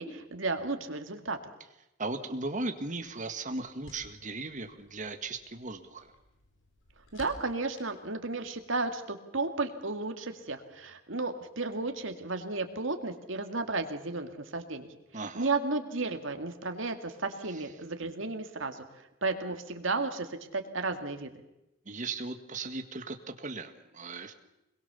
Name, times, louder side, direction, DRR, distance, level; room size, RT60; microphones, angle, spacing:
voice 1, 0.0-1.4 7.1-14.9 15.3-18.8 19.2-21.3, right 3 dB, 70° right, 6 dB, 2.3 m, -33 dB
voice 2, 2.0-6.1 15.1-15.5 17.5-17.6 21.9-24.3, right 3 dB, 40° right, 7 dB, 1.7 m, -37 dB
sound 1, 2.7-8.9, left 1 dB, 75° left, 4.8 m, -56 dB
25.0 x 21.5 x 7.0 m, 0.91 s
head